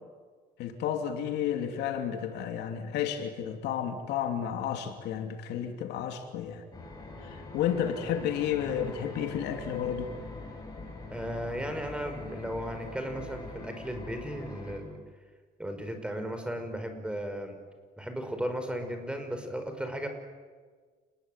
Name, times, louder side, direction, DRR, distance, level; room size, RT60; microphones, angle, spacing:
voice 1, 0.6-6.6 7.2-10.1, left 9 dB, 80° left, 5 dB, 3.1 m, -32 dB
sound 1, 6.7-14.8, left 2 dB, 20° left, 7.5 m, -43 dB
voice 2, 11.1-15.0 15.6-17.6 18.0-20.1, equal, 5° right, 6 dB, 5.0 m, -35 dB
29.0 x 20.5 x 9.2 m, 1.5 s
cardioid pair, 110°, 17 cm